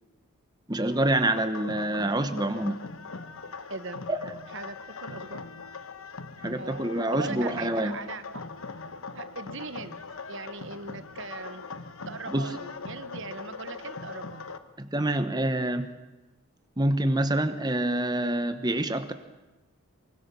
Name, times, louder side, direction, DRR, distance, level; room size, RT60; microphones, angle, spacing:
voice 1, 0.7-2.8 4.1-4.2 6.4-7.9 12.3-12.5 14.8-15.9 16.8-19.1, right 1 dB, 20° right, 9 dB, 1.1 m, -26 dB
sound 1, 0.9-14.6, left 4 dB, 65° left, 1.3 m, -41 dB
voice 2, 3.7-4.0 4.5-5.4 6.5-8.4 9.1-10.0 10.3-11.6 12.0-14.4, right 4 dB, 55° right, 12 dB, 1.2 m, -40 dB
24.5 x 24.0 x 7.0 m, 1.1 s
head